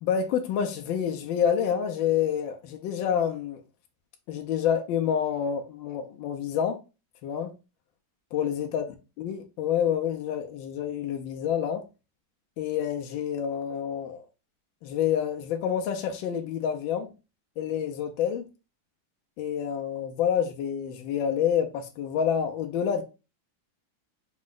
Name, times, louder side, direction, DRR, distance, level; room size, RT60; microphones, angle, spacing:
voice 1, 0.0-3.6 4.3-6.8 7.2-7.5 8.3-8.8 9.2-11.8 12.6-14.2 14.8-17.1 17.6-18.4 19.4-23.0, left 8 dB, 80° left, 1.3 m, -28 dB
4.8 x 2.1 x 3.7 m
omnidirectional pair, 2.2 m